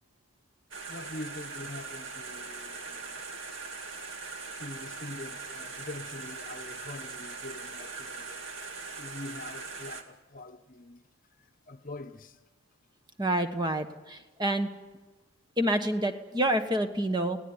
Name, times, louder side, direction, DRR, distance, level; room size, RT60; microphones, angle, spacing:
sound 1, 0.7-10.0, right 4 dB, 60° right, 2.4 m, -41 dB
voice 1, 0.9-3.2 4.6-8.4 9.0-11.0 11.4-12.4, left 2 dB, 40° left, 1.0 m, -44 dB
voice 2, 13.2-14.7 15.6-17.4, right 1 dB, 20° right, 1.2 m, -28 dB
25.0 x 18.0 x 9.7 m
head